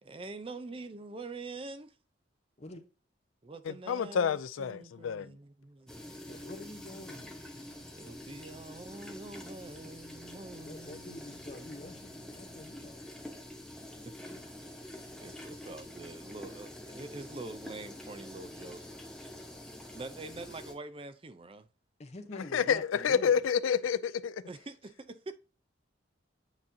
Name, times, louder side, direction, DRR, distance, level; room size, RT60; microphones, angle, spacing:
voice 1, 0.0-1.9 3.4-6.4 7.9-11.4 11.7-12.0 14.0-14.1 15.2-18.8 19.8-21.7 24.5-25.4, right 3 dB, 30° right, 0.5 m, -45 dB
voice 2, 3.7-5.3 22.5-24.4, left 7 dB, 90° left, 0.4 m, -29 dB
sound 1, 5.9-20.7, left 1 dB, 5° left, 0.9 m, -46 dB
voice 3, 6.3-7.9 10.6-13.0 22.0-23.5, left 1 dB, 35° left, 0.8 m, -47 dB
8.8 x 4.1 x 2.7 m
head